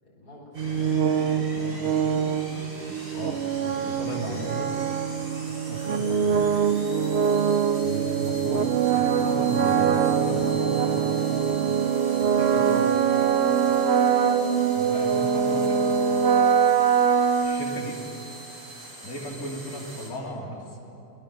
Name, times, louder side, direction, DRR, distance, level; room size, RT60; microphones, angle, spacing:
voice 1, 0.0-2.0 5.3-5.6 14.1-14.4, left 1 dB, 85° left, -4 dB, 4.9 m, -48 dB
sound 1, 0.5-20.1, right 1 dB, 85° right, 6.2 m, -42 dB
sound 2, 0.6-18.2, right 7 dB, 55° right, 0.8 m, -23 dB
voice 2, 1.5-2.0 3.1-4.7 5.7-6.5 7.8-8.7 8.9-11.7 12.2-13.0 14.7-15.8 17.4-18.0 19.0-20.8, equal, 65° left, -3 dB, 3.3 m, -36 dB
26.0 x 19.5 x 6.8 m, 3.0 s
omnidirectional pair, 1.6 m